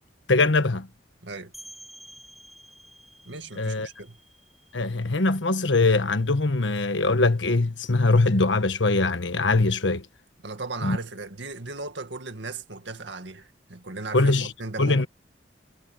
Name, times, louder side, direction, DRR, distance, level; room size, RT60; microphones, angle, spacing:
voice 1, 0.3-0.9 3.6-3.9 4.7-10.0 10.8-11.0 14.1-14.5 14.8-15.1, left 3 dB, 85° left, 1.4 m, -22 dB
sound 1, 1.5-7.0, equal, ahead, 3.7 m, -51 dB
voice 2, 3.3-4.2 10.4-15.1, right 3 dB, 75° right, 2.2 m, -37 dB
head